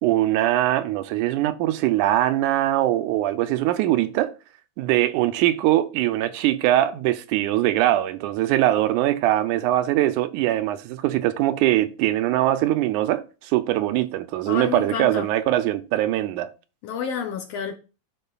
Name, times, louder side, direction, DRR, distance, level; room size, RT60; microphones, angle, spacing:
voice 1, 0.0-4.3 4.8-16.5, right 14 dB, 90° right, 2.1 m, -22 dB
voice 2, 14.5-15.3 16.8-17.7, left 7 dB, 70° left, 1.6 m, -29 dB
12.0 x 4.3 x 2.3 m
omnidirectional pair, 3.4 m